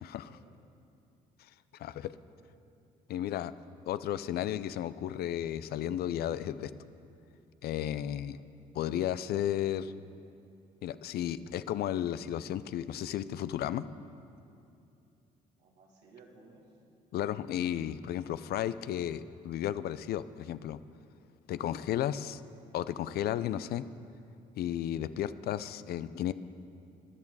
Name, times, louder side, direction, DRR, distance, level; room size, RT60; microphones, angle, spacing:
voice 1, 0.2-0.6 1.6-1.7 2.4-2.5 8.2-8.4 15.6-16.8, right 3 dB, 80° right, -1 dB, 2.2 m, -58 dB
voice 2, 1.8-2.1 3.1-3.5 3.9-6.7 7.6-8.4 8.7-9.9 10.8-13.9 17.1-20.8 21.5-22.4 22.7-23.8 24.6-26.3, left 11 dB, 65° left, 15 dB, 0.5 m, -33 dB
14.5 x 10.5 x 4.8 m, 2.7 s
supercardioid pair, 60°, 17 cm